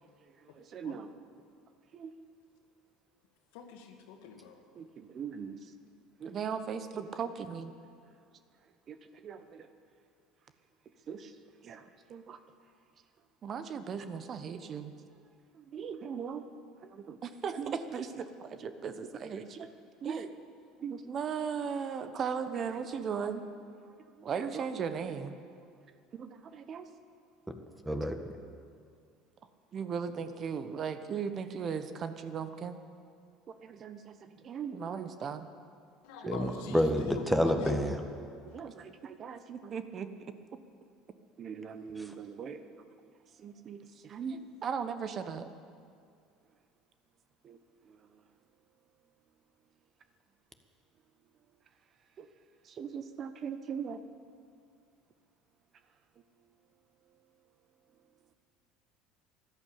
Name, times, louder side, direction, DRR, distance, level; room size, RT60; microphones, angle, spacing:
voice 1, 0.4-1.1 1.9-2.1 4.7-5.6 6.2-7.7 8.9-9.7 11.1-11.3 11.6-12.4 13.4-14.9 15.5-16.4 16.9-19.7 20.0-20.3 20.8-23.4 24.0-25.6 26.1-26.9 29.7-32.8 33.6-35.5 36.2-36.3 38.4-40.1 41.4-43.1 43.4-45.5 47.4-47.6 47.8-48.2 52.2-52.3 52.6-54.0, right 6 dB, 45° right, 10 dB, 1.1 m, -38 dB
voice 2, 3.5-4.6 36.0-37.8, left 7 dB, 75° left, 4 dB, 1.9 m, -42 dB
voice 3, 27.8-28.2 36.3-38.0, equal, 5° right, 6 dB, 1.6 m, -28 dB
13.5 x 11.5 x 8.7 m, 2.3 s
hypercardioid pair, 80°, 0 cm